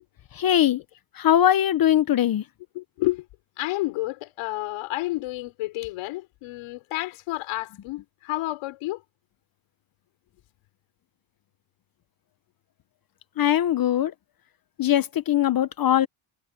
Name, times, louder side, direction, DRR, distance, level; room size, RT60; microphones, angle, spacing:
voice 1, 0.3-0.8 1.2-2.4 13.4-14.1 14.8-16.1, left 11 dB, 45° left, 0.9 m, -21 dB
voice 2, 2.7-3.2 3.6-9.0, left 19 dB, 85° left, 6.2 m, -30 dB
cardioid pair, 105°, 50 cm